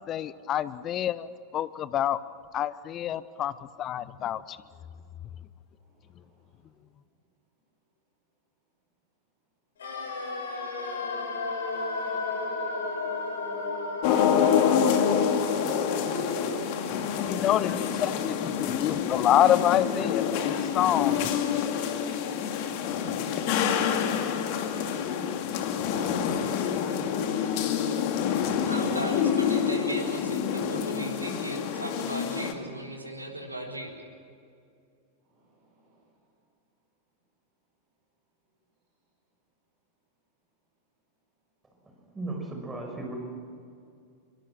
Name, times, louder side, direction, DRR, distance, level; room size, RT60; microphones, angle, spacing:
voice 1, 0.1-1.3 1.5-2.2 2.5-3.5 3.8-4.4 17.3-21.2, left 11 dB, 30° left, 17 dB, 0.9 m, -27 dB
voice 2, 5.8-6.6 35.3-36.0, right 2 dB, 45° right, -1 dB, 6.1 m, -67 dB
sound 1, 9.8-19.7 20.0-20.1, left 3 dB, 65° left, 5.7 m, -35 dB
sound 2, 14.0-32.5, left 7 dB, 45° left, 2.3 m, -27 dB
voice 3, 28.7-34.1, right 1 dB, 85° right, 1 dB, 4.0 m, -36 dB
voice 4, 42.1-43.1, right 2 dB, 15° right, 1 dB, 6.1 m, -35 dB
25.0 x 23.5 x 6.2 m, 2.3 s
figure-of-eight pair, 90°, 0 cm